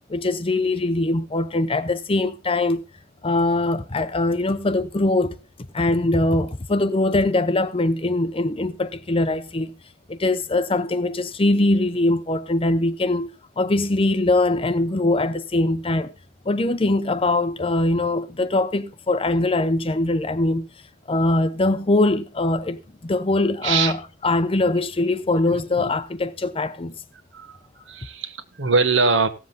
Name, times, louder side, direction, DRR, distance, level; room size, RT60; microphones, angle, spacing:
voice 1, 0.1-2.8 3.2-5.4 5.7-9.7 10.1-13.3 13.6-16.1 16.5-20.7 21.1-26.9, left 2 dB, 30° left, 0.6 m, -22 dB
voice 2, 25.5-25.9 27.3-29.3, right 4 dB, 70° right, 1.2 m, -23 dB
16.0 x 7.5 x 3.9 m
head